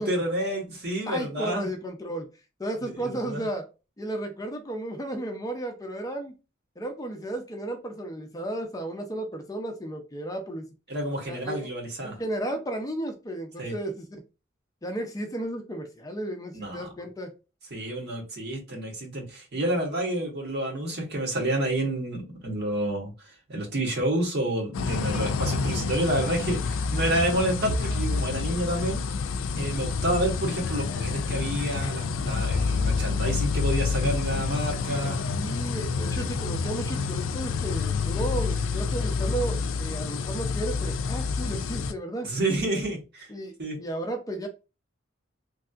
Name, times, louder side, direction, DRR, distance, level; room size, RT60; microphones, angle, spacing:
voice 1, 0.0-1.7 2.8-3.4 10.9-12.2 13.6-13.7 16.5-16.9 17.7-29.0 29.6-35.2 42.2-43.3 43.6-43.8, right 1 dB, 60° right, 1.4 m, -29 dB
voice 2, 1.1-2.3 2.6-3.7 4.0-6.3 6.8-10.7 11.3-11.7 12.0-14.2 14.8-17.3 35.3-42.3 43.3-44.5, right 1 dB, 20° left, 0.5 m, -33 dB
sound 1, 24.7-41.9, left 4 dB, 90° left, 0.4 m, -28 dB
3.3 x 2.7 x 2.4 m
head